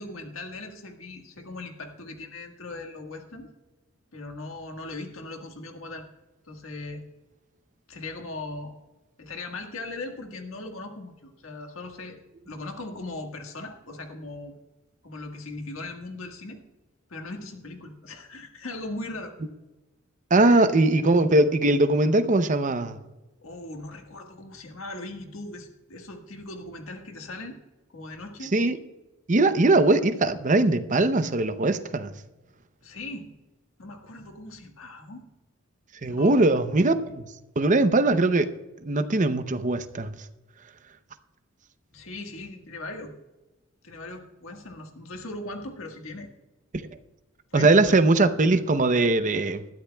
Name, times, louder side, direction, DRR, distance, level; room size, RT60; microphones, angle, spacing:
voice 1, 0.0-3.5 4.1-6.1 6.4-7.0 7.9-8.7 9.2-12.2 12.5-14.6 15.0-16.6 17.1-19.3 20.3-20.6 23.4-27.6 27.9-28.5 32.8-33.4 33.8-35.3 36.0-36.4 41.9-43.1 43.8-46.3 47.5-47.7, left 2 dB, 70° left, 3 dB, 1.6 m, -39 dB
voice 2, 20.3-23.0 28.5-28.8 29.3-32.1 36.0-37.2 37.6-38.5 38.8-40.2 47.5-49.7, right 2 dB, 35° right, 10 dB, 0.7 m, -21 dB
20.0 x 13.0 x 2.3 m, 1.1 s
head